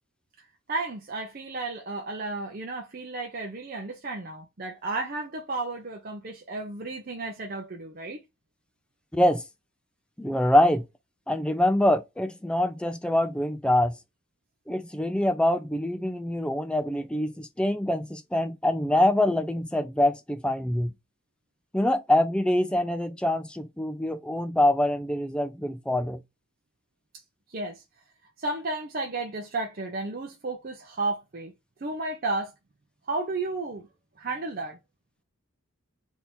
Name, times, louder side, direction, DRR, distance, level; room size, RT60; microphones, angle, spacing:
voice 1, 0.4-8.2 27.5-27.8 28.4-31.5 31.8-32.5 33.1-33.9 34.2-34.8, right 2 dB, 45° right, 0.7 m, -33 dB
voice 2, 9.1-9.4 10.2-10.8 11.3-13.9 14.7-20.9 21.7-26.2, left 1 dB, 5° left, 0.4 m, -24 dB
3.5 x 2.7 x 4.3 m
head